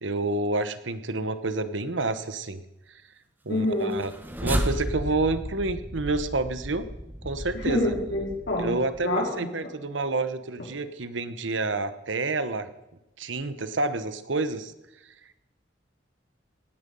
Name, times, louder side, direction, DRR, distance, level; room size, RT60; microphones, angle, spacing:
voice 1, 0.0-2.6 3.4-4.1 4.4-6.9 7.2-7.9 8.6-12.7 13.2-14.7, right 3 dB, 80° right, 12 dB, 1.1 m, -29 dB
voice 2, 3.5-3.9 7.5-8.8 9.0-9.5 10.6-10.7, left 1 dB, 75° left, -2 dB, 4.6 m, -27 dB
sound 1, 3.8-9.1, equal, 10° right, 1.1 m, -33 dB
18.0 x 10.0 x 5.5 m, 0.94 s
head